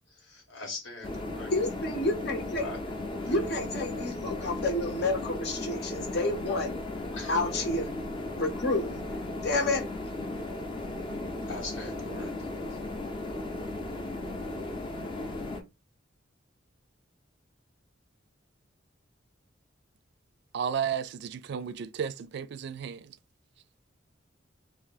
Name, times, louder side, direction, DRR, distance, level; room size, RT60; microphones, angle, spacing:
voice 1, 0.1-1.5 2.6-2.8 3.2-3.4 5.6-5.7 6.5-6.6 7.1-7.4 11.5-12.8, left 3 dB, 90° left, 1.6 m, -42 dB
sound 1, 1.0-15.6, left 2 dB, 25° left, 0.6 m, -36 dB
voice 2, 1.5-2.7 3.3-6.7 7.3-7.9 8.4-9.0 9.4-9.9, left 2 dB, 55° left, 0.8 m, -29 dB
voice 3, 20.5-23.2, right 7 dB, 60° right, 0.3 m, -33 dB
2.7 x 2.7 x 3.8 m
head